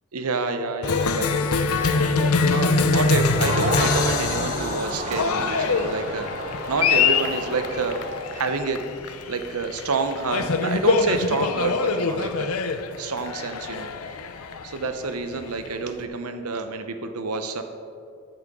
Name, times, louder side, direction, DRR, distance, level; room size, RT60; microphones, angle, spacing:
voice 1, 0.1-1.3 1.9-6.2 6.7-8.0 8.3-8.8 9.1-12.5 13.0-13.9 14.6-17.6, right 4 dB, 90° right, 7 dB, 0.8 m, -28 dB
Cheering, 0.8-16.0, left 4 dB, 80° left, 0.6 m, -24 dB
Crowd, 3.2-8.5, right 2 dB, 30° right, 0.8 m, -32 dB
14.0 x 8.0 x 3.7 m, 2.3 s
head